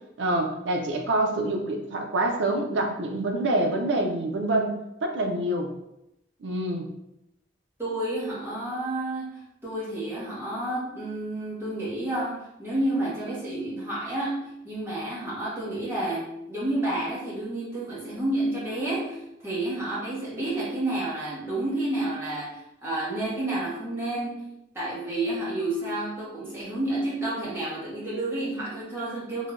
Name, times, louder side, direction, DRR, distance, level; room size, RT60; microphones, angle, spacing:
voice 1, 0.2-4.7 5.0-5.7 6.4-6.9, right 1 dB, 70° right, 3 dB, 0.4 m, -26 dB
voice 2, 7.8-24.4 24.7-29.5, right 1 dB, 10° right, -8 dB, 0.8 m, -30 dB
3.2 x 2.2 x 2.4 m, 0.85 s
head